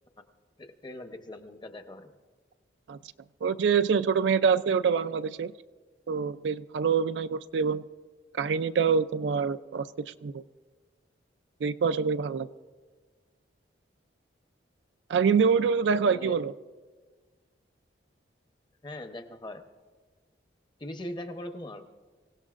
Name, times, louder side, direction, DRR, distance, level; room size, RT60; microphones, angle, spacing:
voice 1, 0.6-2.1 16.1-16.4 18.8-19.6 20.8-21.8, left 1 dB, 25° left, 7 dB, 0.8 m, -40 dB
voice 2, 3.4-5.5 6.1-7.8 8.4-10.4 11.6-12.5 15.1-16.5, right 6 dB, 70° right, 13 dB, 0.4 m, -25 dB
25.5 x 16.5 x 2.5 m, 1.4 s
head